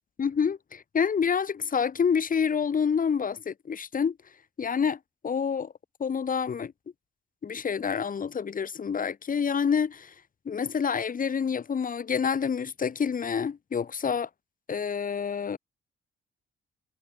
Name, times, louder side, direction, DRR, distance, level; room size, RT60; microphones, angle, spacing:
voice 1, 0.2-4.2 4.6-5.7 6.0-6.7 7.4-10.1 10.4-14.3 14.7-15.6, left 6 dB, 45° left, 3.1 m, -28 dB
cardioid pair, 90°, 20 cm